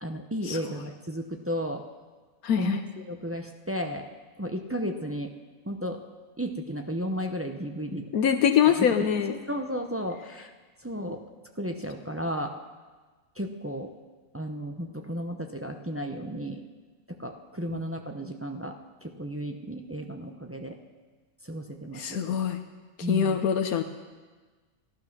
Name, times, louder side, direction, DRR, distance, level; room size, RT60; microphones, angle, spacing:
voice 1, 0.0-1.8 2.6-4.0 4.4-5.3 5.7-6.0 6.4-8.1 8.7-9.1 9.5-10.5 10.8-11.2 11.6-12.5 13.4-13.9 14.3-16.6 17.1-18.7 19.0-20.8 21.4-22.4 23.0-23.4, equal, 15° right, 3 dB, 0.5 m, -33 dB
voice 2, 2.4-2.8 8.1-9.4 17.7-17.8 21.9-22.6 23.1-23.8, left 8 dB, 75° left, 7 dB, 1.2 m, -24 dB
15.0 x 12.0 x 6.0 m, 1.4 s
omnidirectional pair, 1.6 m